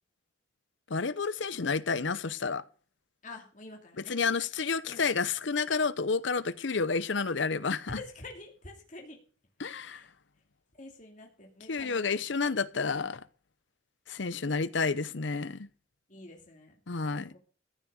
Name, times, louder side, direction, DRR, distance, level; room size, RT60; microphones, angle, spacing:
voice 1, 0.9-2.6 4.1-8.0 9.6-10.0 11.7-13.2 14.1-15.7 16.9-17.3, left 4 dB, 70° left, 0.8 m, -30 dB
voice 2, 3.2-4.2 4.9-5.2 7.9-9.2 9.7-10.1 10.7-12.2 16.1-16.8 17.1-17.4, left 2 dB, 40° left, 2.7 m, -47 dB
14.5 x 6.5 x 6.4 m
head